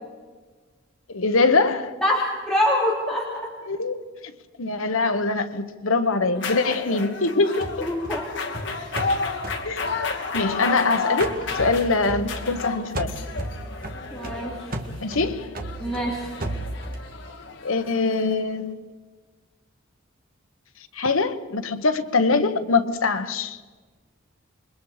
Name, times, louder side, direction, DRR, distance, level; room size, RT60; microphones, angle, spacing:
voice 1, 1.1-1.9 3.7-4.0 4.6-7.9 9.6-9.9 10.3-13.1 15.0-15.5 17.6-18.8 20.9-23.6, left 3 dB, 85° left, 1.4 m, -23 dB
voice 2, 2.0-3.3 7.8-8.2 8.6-8.8 14.1-14.5 15.8-16.3, left 1 dB, 5° left, 3.0 m, -24 dB
sound 1, 6.4-18.3, left 4 dB, 65° left, 2.6 m, -31 dB
sound 2, 7.6-10.8 11.2-12.7 12.9-17.1, right 1 dB, 45° right, 2.0 m, -34 dB
28.5 x 22.5 x 5.0 m
head